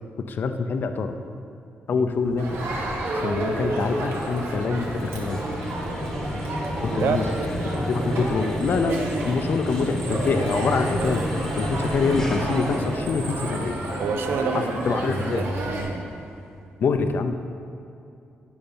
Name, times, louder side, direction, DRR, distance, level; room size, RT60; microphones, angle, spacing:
voice 1, 0.3-1.1 1.9-2.5 3.2-5.5 6.8-7.3 7.8-11.2 11.6-13.8 14.5-15.4 16.8-17.3, left 4 dB, 50° left, 8 dB, 0.6 m, -25 dB
sound 1, 2.1-16.6, left 1 dB, 10° left, 1.2 m, -33 dB
Crowd, 2.4-15.8, right 2 dB, 90° right, 1.8 m, -30 dB
voice 2, 6.9-7.6 14.0-16.1, right 5 dB, 65° right, 7 dB, 0.7 m, -29 dB
15.5 x 5.4 x 5.6 m, 2.5 s
wide cardioid pair, 160°, 4 cm